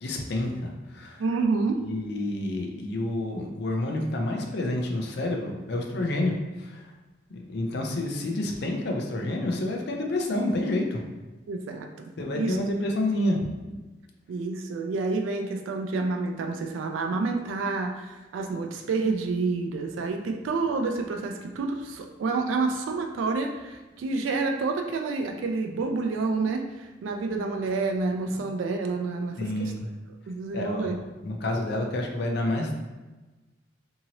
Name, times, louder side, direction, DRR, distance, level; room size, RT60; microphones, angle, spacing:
voice 1, 0.0-1.3 1.8-6.9 7.3-11.0 12.2-13.4 28.3-28.4 29.4-29.9 30.5-32.7, left 1 dB, 60° left, 2 dB, 0.5 m, -29 dB
voice 2, 1.2-1.8 11.5-12.6 14.3-29.7 30.3-31.0, right 3 dB, 90° right, 4 dB, 0.3 m, -29 dB
2.8 x 2.7 x 2.8 m, 1.2 s
head